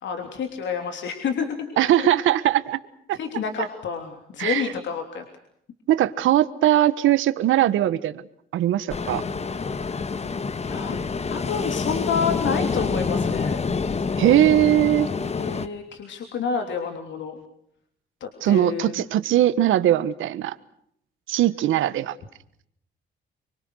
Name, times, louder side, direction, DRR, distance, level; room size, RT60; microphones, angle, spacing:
voice 1, 0.0-2.4 3.1-5.2 10.6-11.0 11.3-13.6 15.3-17.4 18.2-19.0, left 6 dB, 70° left, 5 dB, 3.2 m, -29 dB
voice 2, 1.8-2.8 3.1-3.2 4.4-4.6 5.9-8.2 8.5-9.2 14.2-15.1 18.4-20.5 21.3-22.1, right 13 dB, 80° right, 14 dB, 1.4 m, -20 dB
Ocean, 8.9-15.7, left 4 dB, 35° left, 1.5 m, -27 dB
26.5 x 24.0 x 6.4 m, 0.71 s
cardioid pair, 90°, 20 cm